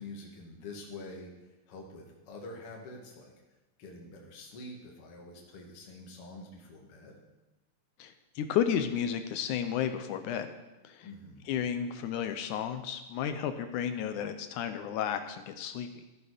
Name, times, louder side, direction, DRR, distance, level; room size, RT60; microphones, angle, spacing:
voice 1, 0.0-3.3 3.8-7.2 11.0-11.5, left 2 dB, 45° left, 0 dB, 2.7 m, -46 dB
voice 2, 8.0-10.5 10.8-11.1 11.5-15.9, left 8 dB, 75° left, 9 dB, 2.0 m, -32 dB
13.5 x 11.0 x 5.0 m, 1.0 s
omnidirectional pair, 4.1 m